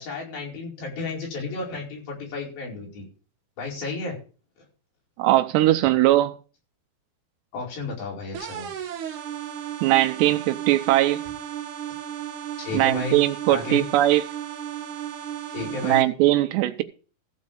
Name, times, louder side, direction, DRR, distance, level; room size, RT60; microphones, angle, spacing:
voice 1, 0.0-3.1 3.6-4.2 7.5-8.7 12.6-13.2 13.5-13.8 15.5-16.1, left 3 dB, 55° left, 6.5 m, -32 dB
voice 2, 5.2-6.3 9.8-11.2 12.7-14.2 15.8-16.8, right 15 dB, 85° right, 2.9 m, -20 dB
sound 1, 8.3-16.0, right 10 dB, 65° right, 2.1 m, -34 dB
14.5 x 5.3 x 7.0 m
omnidirectional pair, 5.0 m